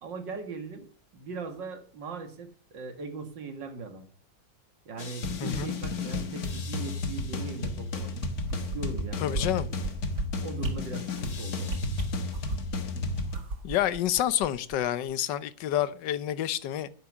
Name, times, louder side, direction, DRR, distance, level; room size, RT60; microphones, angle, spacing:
voice 1, 0.0-0.9 1.1-4.1 4.9-8.1 8.5-9.5 10.4-11.8, right 4 dB, 85° right, 2.6 m, -39 dB
sound 1, 5.0-13.4, left 3 dB, 55° left, 1.9 m, -33 dB
sound 2, 8.0-9.0 9.3-9.4 9.8-10.2 10.6-10.7 11.1-11.3 11.6-12.8 13.2-14.8 15.1-15.2, right 3 dB, 65° right, 2.4 m, -34 dB
voice 2, 9.2-9.7 13.6-16.9, left 12 dB, 75° left, 1.5 m, -28 dB
11.0 x 9.5 x 6.3 m
omnidirectional pair, 1.9 m